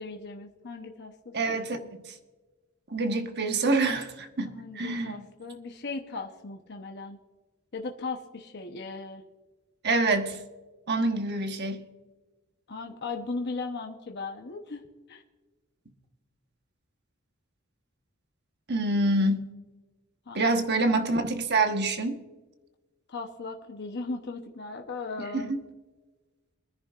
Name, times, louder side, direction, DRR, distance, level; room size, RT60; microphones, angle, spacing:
voice 1, 0.0-1.9 4.4-7.2 7.7-9.2 12.7-15.2 20.3-20.8 23.1-25.6, left 3 dB, 55° left, 2 dB, 0.9 m, -38 dB
voice 2, 1.3-2.1 2.9-5.2 9.8-10.4 10.9-11.9 18.7-19.5 20.3-22.2 25.3-25.6, right 2 dB, 55° right, 6 dB, 1.2 m, -26 dB
24.5 x 10.5 x 2.5 m, 1.3 s
head